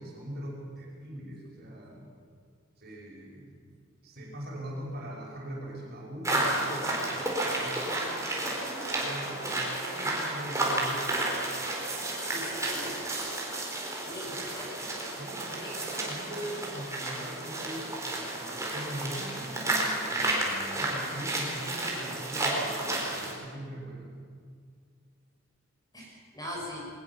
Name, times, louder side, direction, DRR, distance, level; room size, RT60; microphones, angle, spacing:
voice 1, 0.0-2.1 2.8-3.7 4.0-11.4 14.3-14.5 15.1-22.8 23.1-24.1, right 1 dB, 50° right, -2 dB, 5.5 m, -41 dB
sound 1, 6.2-23.3, right 2 dB, 15° right, 4.3 m, -32 dB
voice 2, 12.2-13.0 13.7-14.7 15.6-15.8 25.9-26.9, equal, 20° left, -3 dB, 6.1 m, -41 dB
21.5 x 19.5 x 7.2 m, 2.1 s
head